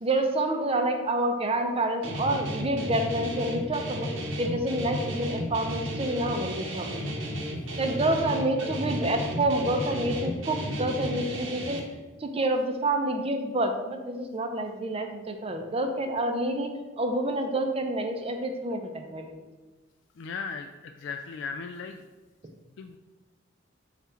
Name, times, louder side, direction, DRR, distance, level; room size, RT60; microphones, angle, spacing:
voice 1, 0.0-4.1 4.4-7.1 7.8-11.8 12.2-19.4, right 1 dB, 30° right, 5 dB, 0.6 m, -28 dB
Guitar, 2.0-11.8, equal, 70° right, 0.9 m, -33 dB
voice 2, 20.2-22.0 22.8-23.0, left 5 dB, 65° left, 6 dB, 0.3 m, -37 dB
6.9 x 2.4 x 5.6 m, 1.2 s
head